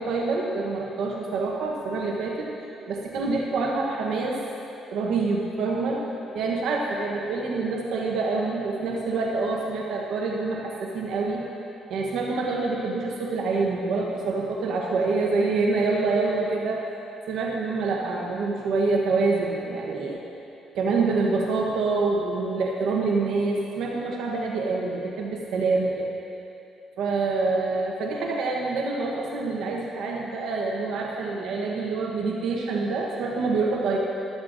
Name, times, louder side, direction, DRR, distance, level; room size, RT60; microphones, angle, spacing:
voice 1, 0.0-2.5 2.8-4.4 4.9-11.4 11.9-16.8 17.3-20.2 20.7-26.1 27.0-34.0, right 3 dB, 80° right, -1 dB, 1.0 m, -26 dB
14.5 x 13.0 x 2.6 m, 2.9 s
cardioid pair, 95°, 0 cm